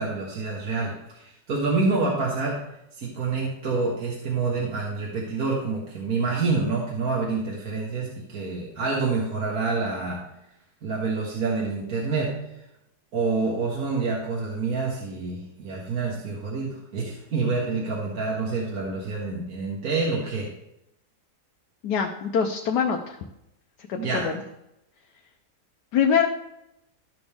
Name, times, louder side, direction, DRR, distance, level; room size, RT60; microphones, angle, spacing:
voice 1, 0.0-2.6 3.0-10.2 10.8-12.3 13.1-20.5 24.0-24.3, right 4 dB, 60° right, -3 dB, 1.9 m, -27 dB
voice 2, 21.8-23.2 23.9-24.3 25.9-26.3, left 7 dB, 80° left, 2 dB, 1.3 m, -23 dB
13.5 x 6.1 x 3.5 m, 0.84 s
omnidirectional pair, 1.8 m